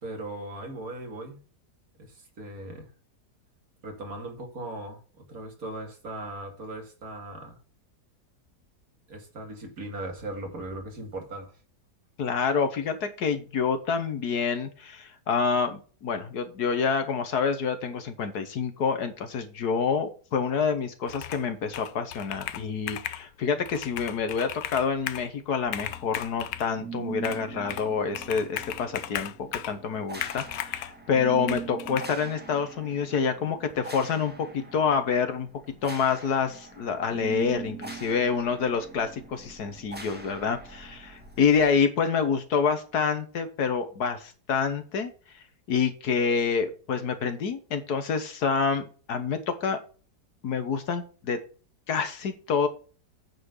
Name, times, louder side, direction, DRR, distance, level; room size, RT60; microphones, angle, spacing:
voice 1, 0.0-1.4 2.0-2.9 3.8-7.6 9.1-11.5, right 2 dB, 55° right, 2.7 m, -38 dB
voice 2, 12.2-35.5 35.8-49.8 50.4-51.4 51.9-52.7, left 6 dB, 70° left, 1.6 m, -27 dB
Computer keyboard, 21.1-21.5 21.7-23.2 23.7-25.3 25.6-26.7 27.2-27.9 28.2-29.8 30.2-31.0 31.5-32.1, left 12 dB, 85° left, 1.3 m, -36 dB
sound 1, 25.9-41.7, right 5 dB, 5° right, 1.4 m, -42 dB
8.9 x 4.5 x 6.5 m
omnidirectional pair, 1.8 m